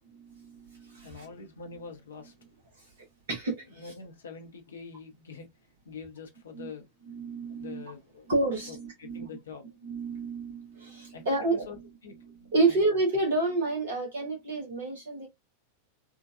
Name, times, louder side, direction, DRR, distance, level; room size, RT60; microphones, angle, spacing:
voice 1, 0.3-1.3 2.8-2.9 3.3-3.9 6.5-6.7 7.1-7.8 8.3-9.2 9.8-11.7 12.5-15.3, right 2 dB, 60° right, 1.2 m, -29 dB
voice 2, 1.0-2.3 3.7-5.5 5.8-6.9 7.3-8.3 8.7-9.6 11.1-11.8 12.0-12.8, left 5 dB, 65° left, 1.0 m, -45 dB
3.7 x 2.5 x 2.5 m
figure-of-eight pair, 90°, 0 cm